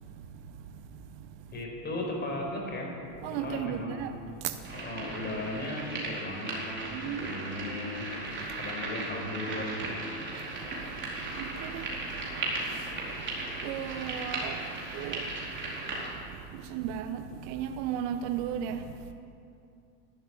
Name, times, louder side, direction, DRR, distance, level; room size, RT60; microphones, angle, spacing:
voice 1, 0.7-1.3 3.2-4.6 6.9-7.3 8.4-8.5 10.4-10.5 11.0-11.1 11.3-13.2 13.5-15.3 16.0-19.1, right 9 dB, 50° right, 1.0 m, -36 dB
voice 2, 1.5-2.9 3.3-4.1 4.7-6.9 7.2-8.1 8.6-9.9, left 1 dB, 20° left, 5.0 m, -36 dB
sound 1, 4.6-16.1, right 2 dB, 25° right, 4.5 m, -37 dB
12.5 x 12.0 x 9.4 m
supercardioid pair, 120°, 46 cm